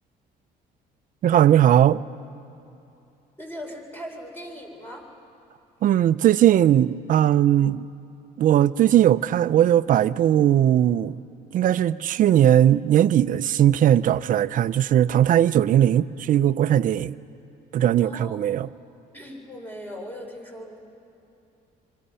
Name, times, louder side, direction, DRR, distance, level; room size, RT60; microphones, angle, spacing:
voice 1, 1.2-2.0 5.8-7.9 8.4-11.2 11.5-17.2 17.7-18.7, right 11 dB, 55° right, 0.5 m, -19 dB
voice 2, 3.4-5.0 18.0-18.4 19.1-20.8, equal, 10° left, 4.4 m, -39 dB
26.0 x 24.0 x 5.6 m
cardioid pair, 110°, 17 cm